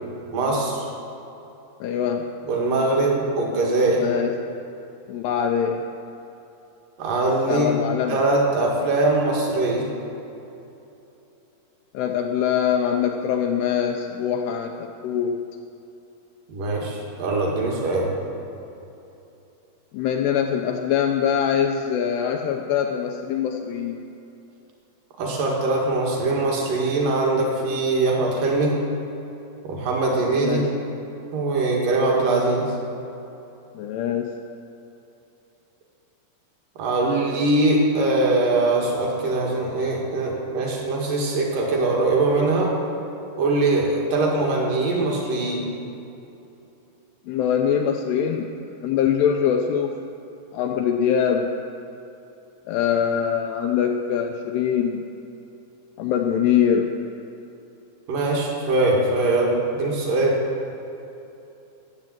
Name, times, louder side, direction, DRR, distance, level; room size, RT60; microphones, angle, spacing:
voice 1, 0.3-0.9 2.5-4.1 7.0-7.8 8.1-9.9 16.5-18.2 25.2-28.8 29.6-30.7 31.3-32.8 36.8-42.8 43.4-45.7 58.1-60.4, right 2 dB, 55° right, -1 dB, 2.9 m, -22 dB
voice 2, 1.8-2.2 4.0-4.3 5.1-5.8 7.5-8.2 11.9-15.4 19.9-24.0 30.4-30.7 33.7-34.3 47.3-48.5 48.8-49.9 50.5-51.5 52.7-55.0 56.0-56.9, left 8 dB, 90° left, 3 dB, 2.4 m, -23 dB
14.0 x 8.7 x 7.7 m, 2.9 s
omnidirectional pair, 5.5 m